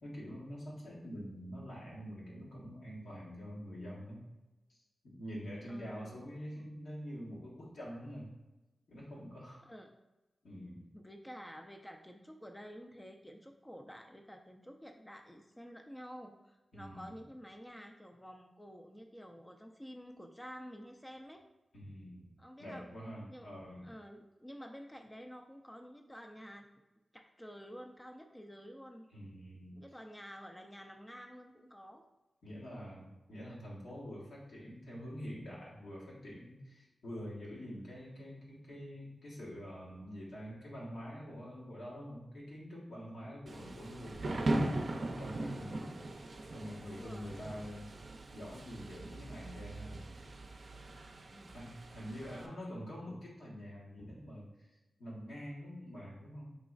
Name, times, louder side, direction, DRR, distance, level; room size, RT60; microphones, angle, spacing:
voice 1, 0.0-4.2 4.7-8.3 8.9-9.7 10.4-10.8 16.7-17.0 21.7-22.3 22.6-23.9 29.1-29.8 32.4-44.5 44.9-45.9 46.5-47.9 48.3-50.0 51.5-56.5, equal, 80° left, -6 dB, 1.3 m, -46 dB
voice 2, 5.7-6.2 9.7-9.9 10.9-21.5 22.4-22.9 23.3-23.5 23.8-26.7 27.1-29.1 29.8-32.0 45.6-46.0 46.8-47.4 51.3-51.7 52.2-52.7, equal, 15° left, 3 dB, 0.4 m, -50 dB
Thunder / Rain, 43.5-52.5, right 2 dB, 60° right, 0.5 m, -39 dB
4.9 x 3.0 x 2.4 m, 1.0 s
cardioid pair, 40°, 0 cm